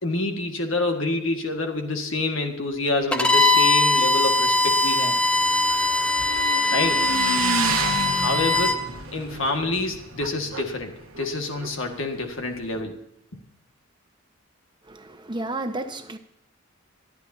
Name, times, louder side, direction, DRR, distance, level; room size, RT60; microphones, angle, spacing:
voice 1, 0.0-5.2 6.7-7.0 8.2-8.8 9.1-13.0, left 2 dB, 65° left, 4 dB, 1.8 m, -27 dB
Bowed string instrument, 3.1-8.8, left 2 dB, 5° left, 0.9 m, -21 dB
Motorcycle / Engine, 3.6-12.8, right 4 dB, 85° right, 1.3 m, -32 dB
voice 2, 9.1-9.5 9.8-9.9 14.8-16.2, right 2 dB, 20° right, 7 dB, 1.1 m, -33 dB
25.0 x 11.5 x 2.8 m, 0.80 s
head